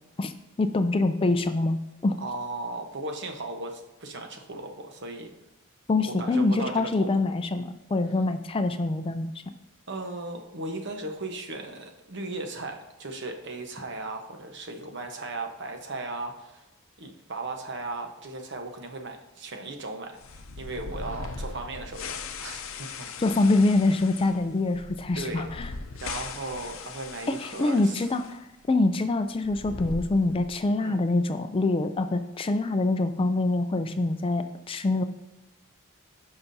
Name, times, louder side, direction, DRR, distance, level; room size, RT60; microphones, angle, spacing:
voice 1, 0.6-2.2 5.9-9.4 23.2-25.7 27.3-28.4 28.7-35.0, left 2 dB, 25° left, 9 dB, 0.4 m, -25 dB
voice 2, 2.2-5.3 6.0-7.1 9.9-16.6 17.0-23.1 25.1-25.5 26.0-28.0 30.8-31.0, right 2 dB, 55° right, 4 dB, 1.0 m, -37 dB
sound 1, 20.2-28.4 28.6-28.7 29.4-30.7, left 4 dB, 65° left, 0.6 m, -40 dB
15.5 x 5.8 x 2.7 m, 1.0 s
head